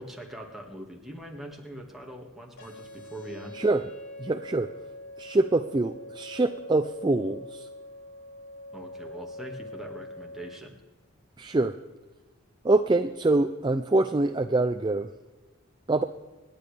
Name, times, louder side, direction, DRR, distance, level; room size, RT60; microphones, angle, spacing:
voice 1, 0.0-3.6 8.7-10.8, right 1 dB, ahead, 0 dB, 1.8 m, -42 dB
sound 1, 2.6-10.6, left 1 dB, 85° left, 4.3 m, -43 dB
voice 2, 3.5-3.9 4.2-4.7 5.2-7.7 11.4-11.7 12.6-15.1 15.9-16.0, right 2 dB, 20° right, 7 dB, 0.4 m, -25 dB
27.0 x 10.5 x 3.4 m, 1.3 s
head